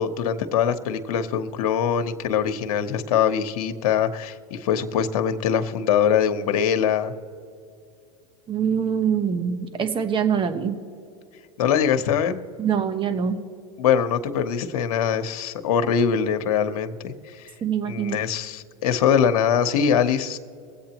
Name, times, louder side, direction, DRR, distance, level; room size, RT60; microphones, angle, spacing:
voice 1, 0.0-7.1 11.6-12.4 13.8-17.5 17.8-20.4, left 8 dB, 80° left, 8 dB, 1.0 m, -23 dB
voice 2, 8.5-10.8 12.6-13.4 17.6-18.2, right 7 dB, 25° right, 8 dB, 1.1 m, -24 dB
24.0 x 8.4 x 3.0 m, 2.4 s
supercardioid pair, 120°, 19 cm